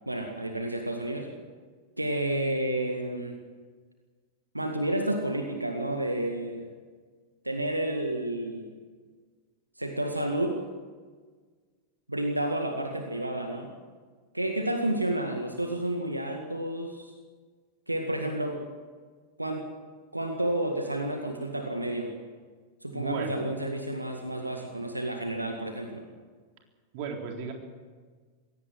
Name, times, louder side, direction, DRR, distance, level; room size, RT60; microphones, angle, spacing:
voice 1, 0.1-1.3 2.0-3.4 4.5-6.7 7.4-8.8 9.8-10.6 12.1-13.7 14.3-17.1 17.9-18.6 19.4-19.7 20.1-22.1 22.8-26.0, right 1 dB, 85° right, 4 dB, 2.0 m, -30 dB
voice 2, 22.9-23.4 26.9-27.5, right 5 dB, 45° right, 3 dB, 3.8 m, -34 dB
23.0 x 17.0 x 7.7 m, 1.5 s
figure-of-eight pair, 90°, 0 cm